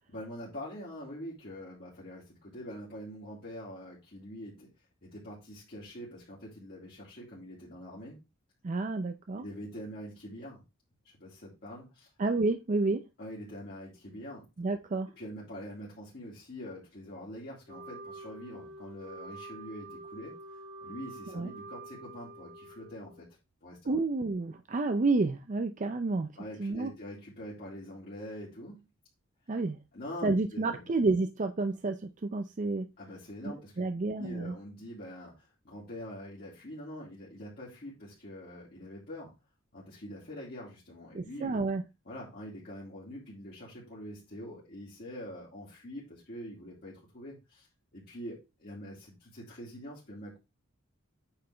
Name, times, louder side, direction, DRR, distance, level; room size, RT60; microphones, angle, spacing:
voice 1, 0.1-4.7 5.0-8.2 9.4-10.6 11.2-12.1 13.2-14.5 15.2-23.3 23.6-24.0 26.4-28.8 29.9-30.9 33.0-33.8 34.2-39.3 39.7-41.6 42.0-47.7 47.9-50.4, equal, 50° left, -7 dB, 2.5 m, -44 dB
voice 2, 8.6-9.4 12.2-13.0 14.6-15.1 21.3-21.5 23.9-26.3 26.6-26.9 29.5-29.8 30.2-32.9 33.8-34.5 41.1-41.8, right 3 dB, 35° right, 8 dB, 0.5 m, -30 dB
Wind instrument woodwind instrument, 17.7-23.3, right 2 dB, 60° right, 1.4 m, -47 dB
8.8 x 5.7 x 3.4 m, 0.26 s
head